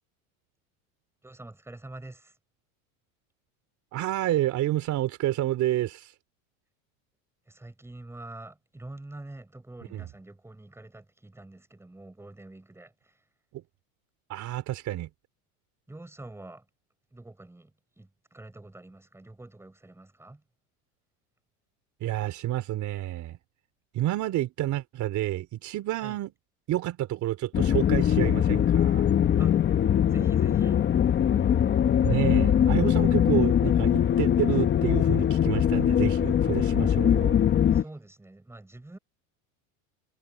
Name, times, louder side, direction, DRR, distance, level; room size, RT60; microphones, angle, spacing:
voice 1, 1.2-2.3 7.5-13.1 15.9-16.7 17.1-20.4 26.0-26.2 29.4-29.6 30.1-30.8 37.7-39.0, right 2 dB, 5° right, 5.4 m, -45 dB
voice 2, 3.9-6.1 9.9-10.1 13.5-13.6 14.3-15.1 22.0-23.4 23.9-26.3 26.7-29.1 32.0-37.4, right 14 dB, 45° right, 3.3 m, -29 dB
sound 1, 27.5-37.8, left 9 dB, 25° left, 1.2 m, -22 dB
supercardioid pair, 130°, 40 cm